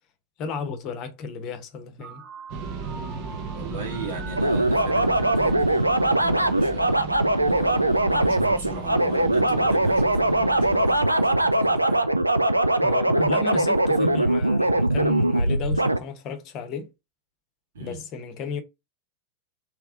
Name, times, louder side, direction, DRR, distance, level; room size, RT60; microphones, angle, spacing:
voice 1, 0.4-2.2 12.8-16.9 17.8-18.6, left 5 dB, 35° left, 0.9 m, -33 dB
sound 1, 2.0-7.1, right 4 dB, 20° right, 1.2 m, -44 dB
sound 2, 2.5-13.3 13.9-14.0 14.4-15.1, right 5 dB, 45° right, 0.9 m, -37 dB
voice 2, 3.5-7.1 7.4-12.1 17.7-18.0, right 3 dB, 60° right, 1.5 m, -37 dB
sound 3, 4.4-16.0, right 1 dB, 85° right, 0.3 m, -21 dB
3.4 x 3.1 x 3.6 m
figure-of-eight pair, 90°, 0 cm